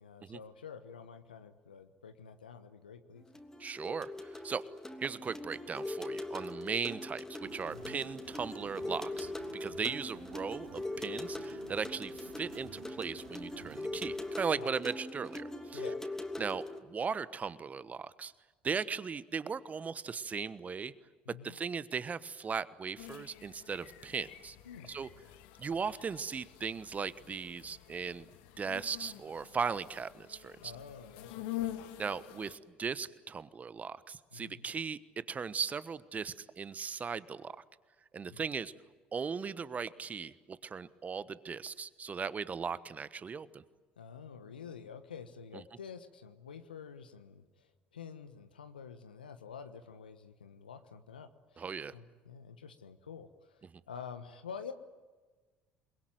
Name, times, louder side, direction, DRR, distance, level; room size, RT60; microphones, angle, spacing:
voice 1, 0.0-3.3 7.7-8.0 14.5-14.7 15.7-16.0 21.2-21.6 24.6-24.9 30.6-31.5 34.3-34.6 38.3-38.5 44.0-53.6 53.9-54.7, left 6 dB, 85° left, 9 dB, 1.2 m, -48 dB
sound 1, 3.2-16.8, left 1 dB, 10° left, 3.1 m, -41 dB
voice 2, 3.6-4.6 5.0-15.8 16.4-18.3 18.6-20.9 21.4-24.6 24.9-25.1 25.6-28.3 28.6-30.7 32.0-35.0 35.3-37.6 38.1-38.7 39.1-43.6 51.6-51.9, right 5 dB, 30° right, 16 dB, 1.2 m, -38 dB
sound 2, 7.4-14.4, right 8 dB, 75° right, 3.0 m, -54 dB
sound 3, 23.0-32.6, left 13 dB, 70° left, 1.7 m, -46 dB
28.0 x 22.0 x 9.3 m, 1.3 s
figure-of-eight pair, 60°, 5 cm